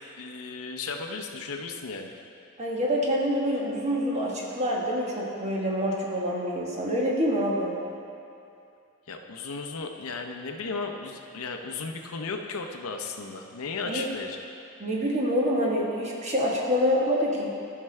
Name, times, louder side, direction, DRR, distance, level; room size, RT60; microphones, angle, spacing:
voice 1, 0.1-2.1 9.1-14.4, left 4 dB, 75° left, 4 dB, 0.7 m, -35 dB
voice 2, 2.6-7.7 13.9-14.0 14.8-17.5, equal, 30° right, -3 dB, 1.3 m, -26 dB
14.0 x 5.8 x 3.3 m, 2.7 s
head